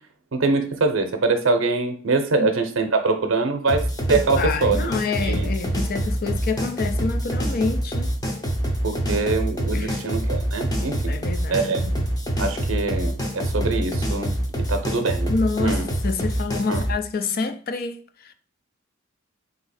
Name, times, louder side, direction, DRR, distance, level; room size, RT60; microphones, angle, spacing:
voice 1, 0.3-4.9 5.2-5.5 8.8-11.2 11.5-11.8 12.4-14.4 14.7-15.3 15.6-15.8 16.7-16.8, right 3 dB, 70° right, 0.6 m, -23 dB
sound 1, 3.7-16.9, equal, 20° left, 0.8 m, -25 dB
voice 2, 4.4-8.1 9.7-10.1 10.8-12.1 15.3-18.3, left 4 dB, 45° left, 0.4 m, -28 dB
3.9 x 2.8 x 4.2 m
head